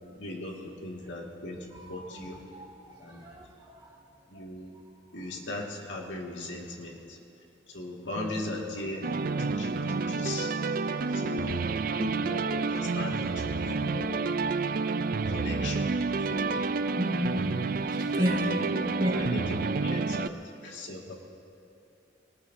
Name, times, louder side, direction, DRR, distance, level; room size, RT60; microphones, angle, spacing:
voice 1, 0.2-2.4 3.0-3.3 4.3-4.7 5.1-7.2 7.7-9.1 9.4-10.5 11.1-14.2 15.3-15.9 16.3-16.6 17.3-17.5 18.2-18.9 19.1-21.1, left 1 dB, 85° left, -1 dB, 2.1 m, -38 dB
voice 2, 1.7-2.7 3.0-3.9 8.1-8.4 10.9-11.5 16.1-16.3 17.0-17.4 17.9-18.4 18.9-19.2, equal, 25° right, -4 dB, 2.6 m, -34 dB
sound 1, 9.0-20.3, right 4 dB, 50° right, 0.4 m, -29 dB
23.0 x 19.0 x 2.7 m, 2.7 s
head